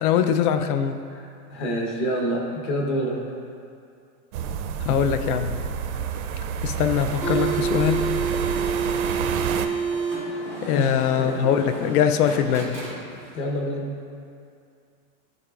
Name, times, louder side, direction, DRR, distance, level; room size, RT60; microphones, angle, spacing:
voice 1, 0.0-1.0 4.8-5.5 6.6-8.1 10.6-12.8, left 8 dB, 70° left, 9 dB, 0.6 m, -22 dB
voice 2, 1.5-3.2 10.6-11.5 13.3-13.9, equal, 40° left, 0 dB, 1.0 m, -27 dB
sound 1, 4.3-9.7, right 8 dB, 60° right, 0.6 m, -29 dB
sound 2, 7.0-13.4, right 5 dB, 5° left, 0.4 m, -29 dB
12.0 x 4.2 x 2.4 m, 2.4 s
supercardioid pair, 160°, 46 cm